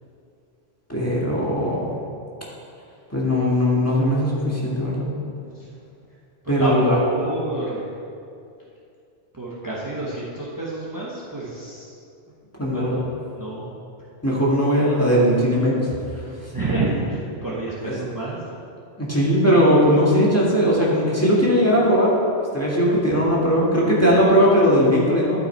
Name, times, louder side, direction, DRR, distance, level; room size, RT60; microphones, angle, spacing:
voice 1, 0.9-1.9 3.1-5.1 6.5-7.0 12.6-13.0 14.2-15.9 16.2-16.3 17.8-17.9 19.0-22.1 22.5-25.4, equal, 15° left, -6 dB, 1.7 m, -19 dB
voice 2, 6.4-7.9 9.3-11.9 12.7-13.7 16.5-18.5, right 2 dB, 20° right, -6 dB, 1.1 m, -28 dB
12.0 x 5.6 x 4.4 m, 2.5 s
omnidirectional pair, 1.2 m